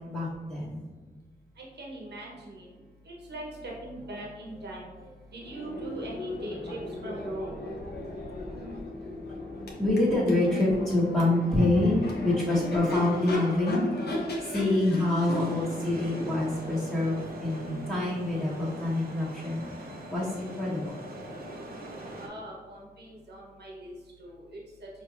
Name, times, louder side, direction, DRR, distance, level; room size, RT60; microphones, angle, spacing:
voice 1, 0.1-0.8 8.5-9.1 9.8-21.0, left 2 dB, 5° left, -10 dB, 1.3 m, -27 dB
voice 2, 1.6-4.9 5.3-7.6 22.2-24.9, right 1 dB, 85° right, -3 dB, 1.0 m, -41 dB
Crowd / Race car auto racing / Accelerating revving vroom, 5.4-19.2, left 1 dB, 75° left, 0.9 m, -37 dB
sound 1, 15.2-22.3, right 1 dB, 65° right, 0.7 m, -42 dB
4.6 x 3.2 x 2.5 m, 1.4 s
cardioid pair, 50°, 17 cm